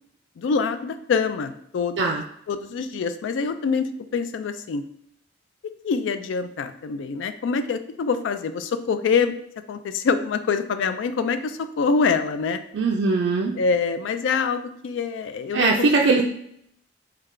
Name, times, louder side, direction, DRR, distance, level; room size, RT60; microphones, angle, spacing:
voice 1, 0.4-2.1 2.5-4.8 5.8-9.3 9.7-12.6 13.5-15.9, left 5 dB, 80° left, 10 dB, 0.3 m, -25 dB
voice 2, 12.7-13.6 15.5-16.2, right 3 dB, 65° right, 0 dB, 0.3 m, -20 dB
3.2 x 2.3 x 3.6 m, 0.71 s
head